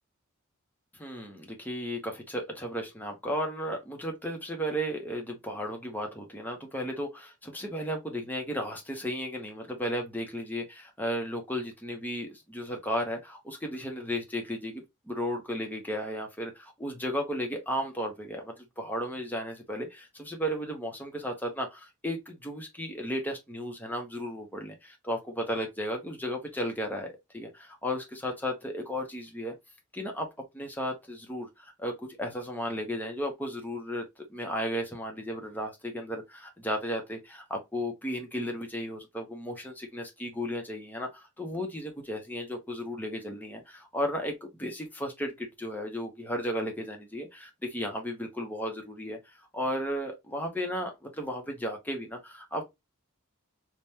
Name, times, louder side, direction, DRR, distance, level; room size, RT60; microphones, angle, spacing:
voice 1, 0.9-27.1 27.3-29.5 29.9-30.3 30.5-44.3 44.6-52.6, equal, 10° left, 0.7 m, -34 dB
3.4 x 2.1 x 2.7 m
head